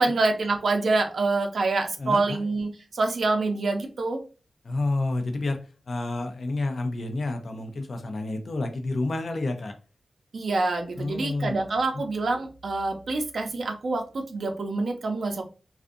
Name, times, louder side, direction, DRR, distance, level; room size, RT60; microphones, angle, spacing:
voice 1, 0.0-4.2 10.3-15.4, right 3 dB, 75° right, 4 dB, 0.5 m, -26 dB
voice 2, 2.0-2.4 4.6-5.6 5.9-9.7 11.0-11.5 11.9-12.0, left 2 dB, 70° left, 5 dB, 0.5 m, -29 dB
2.5 x 2.4 x 2.4 m, 0.34 s
cardioid pair, 45°, 0 cm